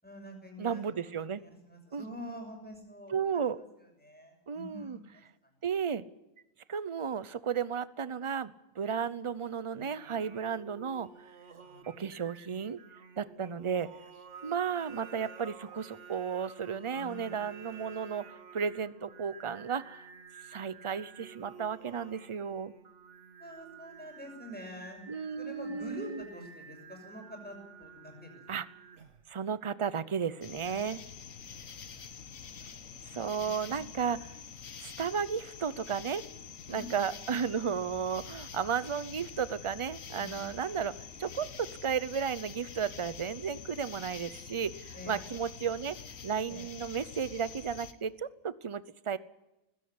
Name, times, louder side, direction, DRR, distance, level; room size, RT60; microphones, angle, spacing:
voice 1, 0.0-1.1 1.4-3.6 4.0-5.5 11.6-11.9 16.9-17.4 23.4-25.0 25.4-28.4 30.6-30.7 31.5-34.0 36.7-37.0 40.2-40.4 44.9-45.3 46.5-46.7, equal, 5° left, 2 dB, 6.5 m, -47 dB
voice 2, 0.6-1.4 1.9-2.0 3.1-3.6 4.5-5.0 5.6-6.1 6.7-11.1 11.9-12.8 13.2-13.9 14.4-20.1 20.5-22.7 25.1-26.2 28.5-28.7 29.3-31.0 33.1-34.2 34.8-36.2 36.7-46.0 46.2-49.2, right 7 dB, 30° right, 17 dB, 0.6 m, -34 dB
Singing, 9.7-29.3, right 6 dB, 65° right, 1.8 m, -52 dB
sound 1, 30.4-47.9, left 7 dB, 85° left, 1.6 m, -46 dB
20.0 x 16.0 x 9.6 m, 0.96 s
omnidirectional pair, 1.4 m